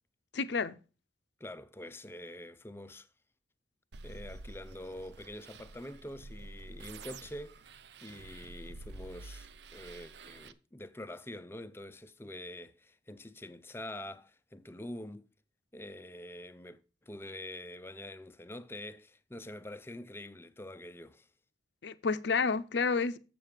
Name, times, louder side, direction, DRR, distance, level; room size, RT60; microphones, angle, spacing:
voice 1, 0.3-0.8 21.8-23.2, left 5 dB, 65° left, 0.6 m, -30 dB
voice 2, 1.4-3.1 4.0-7.6 8.0-15.2 15.7-21.3, left 1 dB, 10° left, 0.5 m, -45 dB
sound 1, 3.9-10.5, right 3 dB, 60° right, 0.6 m, -49 dB
7.6 x 7.3 x 5.0 m
head